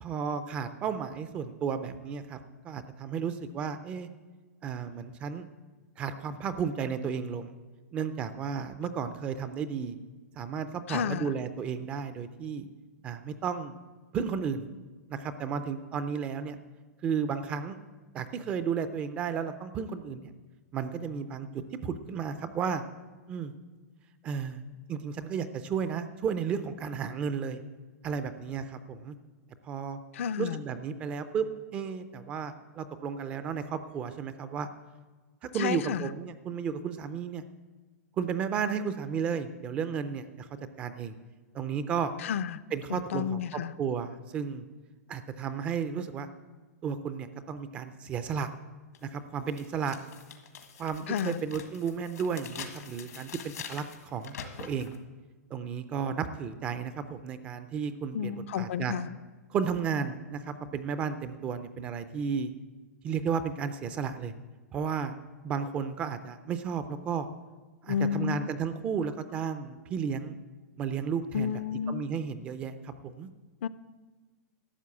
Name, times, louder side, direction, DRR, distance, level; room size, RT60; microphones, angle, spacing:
voice 1, 0.0-2.4 2.6-4.1 4.6-5.5 6.0-7.6 7.9-10.0 10.4-12.7 13.0-13.7 14.1-14.6 15.1-16.6 17.0-17.8 18.1-20.3 20.7-21.5 21.8-22.8 23.3-23.5 24.2-24.6 24.9-27.6 28.0-29.2 29.6-30.0 30.4-31.5 31.7-34.7 35.4-37.4 38.2-40.5 40.8-41.2 41.5-42.1 42.7-44.6 45.1-46.3 46.8-48.5 49.0-50.0 50.8-54.9 55.5-58.9 59.5-62.5 63.0-64.3 64.7-65.2 65.4-67.3 67.8-70.3 70.8-71.5 71.9-73.3, right 6 dB, 15° right, 11 dB, 0.4 m, -33 dB
voice 2, 10.9-11.3 30.1-30.6 35.5-36.1 42.2-42.6 42.9-43.7 51.1-51.4 58.1-59.2 67.9-68.5 71.3-72.1 73.6-73.7, left 8 dB, 50° left, 14 dB, 0.4 m, -31 dB
sound 1, 48.9-49.0 49.5-55.0, left 7 dB, 85° left, 1.7 m, -45 dB
12.5 x 7.2 x 8.3 m, 1.3 s
hypercardioid pair, 175°, 9 cm